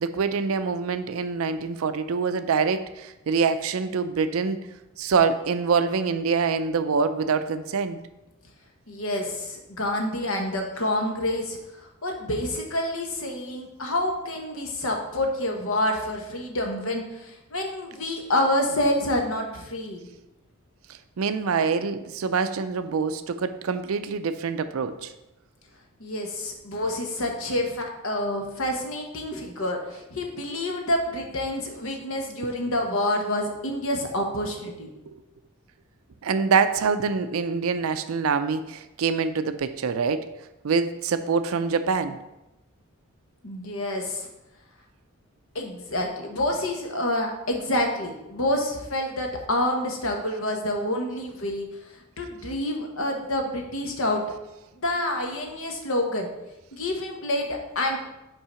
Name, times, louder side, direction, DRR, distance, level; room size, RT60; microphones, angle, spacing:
voice 1, 0.0-4.6 5.0-8.0 21.2-25.1 35.1-35.2 36.2-40.3 40.6-42.2, right 5 dB, 80° right, 10 dB, 0.4 m, -25 dB
voice 2, 8.9-20.1 26.0-34.9 43.4-44.3 45.5-51.7 52.2-54.2 54.8-56.3 56.7-58.0, left 1 dB, 80° left, 2 dB, 1.2 m, -28 dB
5.7 x 4.6 x 5.6 m, 0.96 s
head